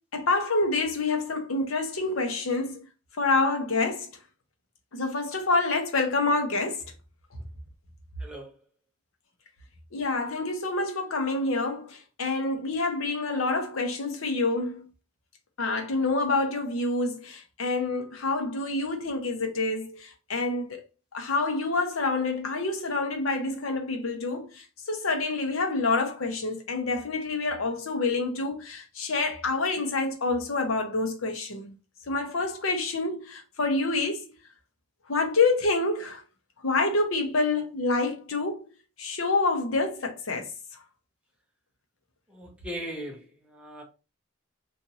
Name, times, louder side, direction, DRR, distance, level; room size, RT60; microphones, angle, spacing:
voice 1, 0.1-2.8 3.2-4.1 4.9-6.8 9.9-14.9 15.6-20.8 21.1-31.7 32.1-34.3 35.1-36.2 36.6-38.7 39.0-40.5, left 3 dB, 80° left, 0.8 m, -27 dB
voice 2, 42.3-43.2 43.5-43.8, equal, 5° right, 0.8 m, -37 dB
2.8 x 2.6 x 3.9 m
head